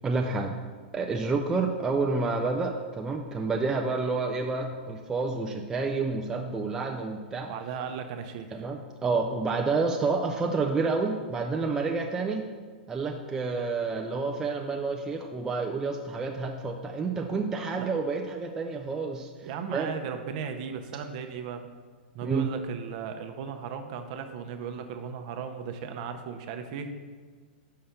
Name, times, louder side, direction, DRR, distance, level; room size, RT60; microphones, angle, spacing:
voice 1, 0.0-0.6 0.9-7.5 8.5-12.4 12.9-19.3 19.7-19.9 22.2-22.5, right 4 dB, 10° right, 1 dB, 0.3 m, -29 dB
voice 2, 7.5-8.7 17.8-17.9 19.4-21.6 22.1-26.9, right 6 dB, 45° right, 6 dB, 0.6 m, -36 dB
5.5 x 5.0 x 5.8 m, 1.5 s
hypercardioid pair, 150°, 6 cm